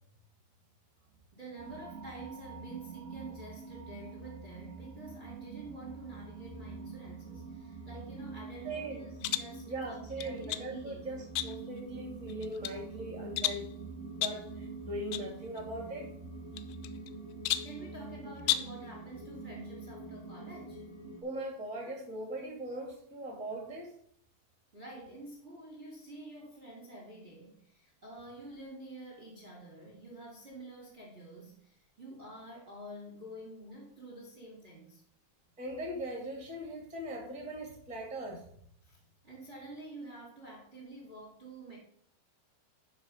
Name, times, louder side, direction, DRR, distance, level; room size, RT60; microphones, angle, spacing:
voice 1, 1.3-11.1 17.6-20.8 24.7-35.0 38.8-39.0 39.2-41.8, right 1 dB, 25° right, -4 dB, 1.7 m, -48 dB
sound 1, 1.6-21.2, right 4 dB, 70° right, 0.5 m, -45 dB
voice 2, 8.6-9.0 9.6-13.7 14.2-16.1 21.2-23.9 35.6-38.4, right 1 dB, 5° right, 0 dB, 1.5 m, -40 dB
sound 2, 9.2-9.6 10.2-10.7 11.4-11.8 12.3-12.8 13.4-13.7 14.2-14.5 15.1-15.3 15.6-15.7 16.6-17.1 17.4-17.8 18.4-18.8, left 14 dB, 85° left, 2.4 m, -33 dB
11.5 x 4.2 x 5.1 m, 0.65 s
omnidirectional pair, 4.4 m